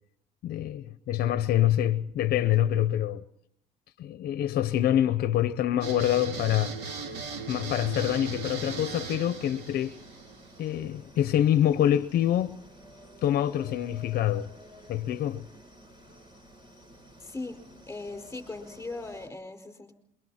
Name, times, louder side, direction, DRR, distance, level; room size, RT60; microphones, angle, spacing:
voice 1, 0.4-3.2 4.0-6.8 7.5-10.0 10.6-12.6 13.2-14.5 14.9-15.4, left 11 dB, 65° left, 0.7 m, -26 dB
sound 1, 5.8-10.8, right 5 dB, 80° right, 2.3 m, -38 dB
sound 2, 6.9-19.3, equal, 30° right, 4.4 m, -52 dB
voice 2, 17.2-17.6 17.9-19.9, left 3 dB, 15° left, 4.8 m, -39 dB
27.5 x 23.5 x 4.3 m
cardioid pair, 110°, 17 cm